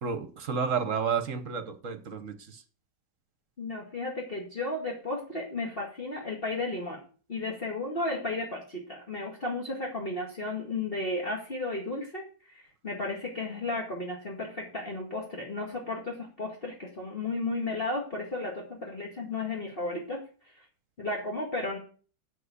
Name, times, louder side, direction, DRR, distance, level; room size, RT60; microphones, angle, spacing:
voice 1, 0.0-2.6, right 6 dB, 50° right, 10 dB, 1.4 m, -31 dB
voice 2, 3.6-7.0 7.3-20.2 21.0-21.8, left 2 dB, 30° left, -1 dB, 2.2 m, -34 dB
8.1 x 7.5 x 8.3 m, 0.40 s
omnidirectional pair, 1.9 m